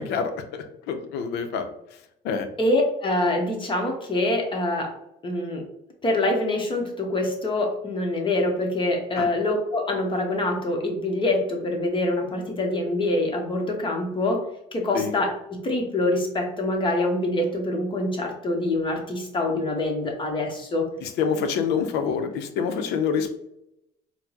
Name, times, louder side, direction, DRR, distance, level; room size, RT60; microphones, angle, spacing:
voice 1, 0.0-1.7 2.2-2.5 9.2-9.3 14.9-15.1 21.0-23.3, left 6 dB, 85° left, 8 dB, 0.5 m, -26 dB
voice 2, 2.6-4.9 5.2-5.6 6.0-14.4 14.7-20.9, left 2 dB, 30° left, 1 dB, 0.9 m, -25 dB
4.3 x 2.0 x 2.8 m, 0.82 s
cardioid pair, 110°, 17 cm